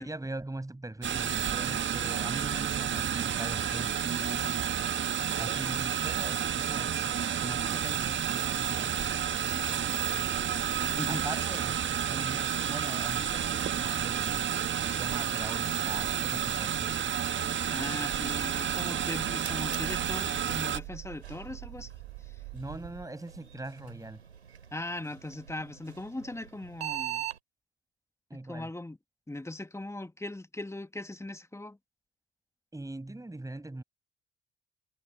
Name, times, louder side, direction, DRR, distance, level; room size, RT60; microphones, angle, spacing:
voice 1, 0.0-4.6 5.4-7.1 7.4-8.9 11.1-14.5 14.8-17.0 22.5-24.2 28.3-28.7 32.7-33.8, right 2 dB, 10° right, 6.3 m, -41 dB
sound 1, 1.0-20.8, right 9 dB, 35° right, 1.7 m, -30 dB
voice 2, 9.5-11.4 17.7-21.9 22.2-22.3 24.7-27.2 28.3-29.0 29.3-31.8, left 2 dB, 10° left, 2.4 m, -40 dB
sound 2, 18.1-23.1, right 24 dB, 60° right, 4.5 m, -45 dB
sound 3, 19.2-27.4, right 11 dB, 85° right, 5.4 m, -43 dB
figure-of-eight pair, 50°, 31 cm